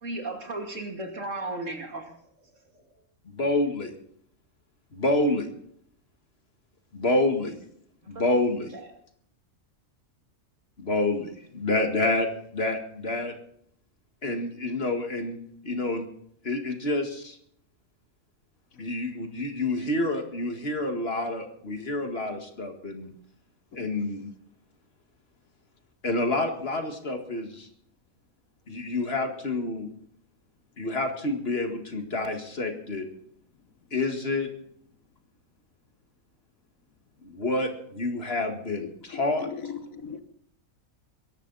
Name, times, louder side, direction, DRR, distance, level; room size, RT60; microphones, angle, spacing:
voice 1, 0.0-2.1 2.7-2.8 8.1-8.3 8.7-8.8, right 2 dB, 65° right, 3 dB, 3.0 m, -35 dB
voice 2, 3.3-3.9 4.9-5.5 6.9-7.6 8.1-8.7 10.8-12.3 12.5-13.3 14.2-15.4 15.6-16.1 16.4-17.4 18.8-23.1 23.7-24.3 26.0-27.7 28.7-29.9 30.8-33.1 33.9-34.5 37.2-39.5, left 2 dB, 45° left, 6 dB, 2.2 m, -28 dB
voice 3, 38.8-40.2, left 7 dB, 80° left, 10 dB, 1.7 m, -40 dB
22.0 x 11.5 x 4.1 m, 0.66 s
omnidirectional pair, 1.4 m